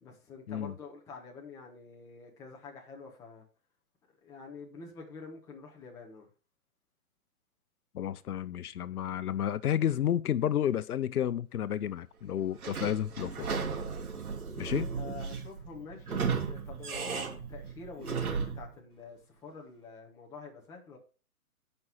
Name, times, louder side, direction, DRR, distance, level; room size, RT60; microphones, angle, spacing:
voice 1, 0.0-3.4 4.2-6.3 14.8-21.0, left 4 dB, 10° left, 1.1 m, -47 dB
voice 2, 7.9-13.5 14.6-14.9, left 10 dB, 85° left, 0.8 m, -31 dB
Sliding door / Squeak, 12.6-18.7, right 5 dB, 80° right, 3.1 m, -35 dB
8.9 x 5.6 x 6.1 m
hypercardioid pair, 165°, 44 cm